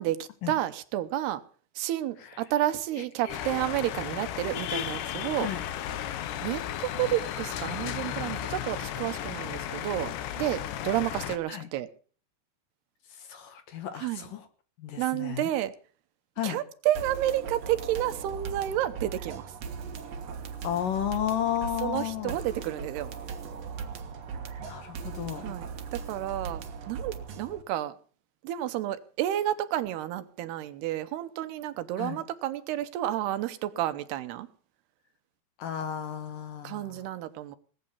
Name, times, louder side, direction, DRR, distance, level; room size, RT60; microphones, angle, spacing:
voice 1, 0.0-1.4 1.8-5.5 6.4-10.1 10.4-11.9 14.0-14.3 15.0-15.7 16.4-19.5 21.8-23.1 25.4-27.9 28.4-34.5 36.6-37.6, right 13 dB, 75° right, 2.8 m, -31 dB
voice 2, 3.2-3.6 5.4-5.6 11.5-11.7 13.3-14.4 14.8-15.5 16.4-16.6 20.6-22.3 24.6-25.5 32.0-32.2 35.6-37.0, left 10 dB, 65° left, 2.6 m, -33 dB
sound 1, 3.3-11.4, left 11 dB, 85° left, 3.3 m, -34 dB
sound 2, 17.0-27.6, right 6 dB, 55° right, 2.0 m, -39 dB
19.5 x 9.0 x 7.1 m
omnidirectional pair, 4.8 m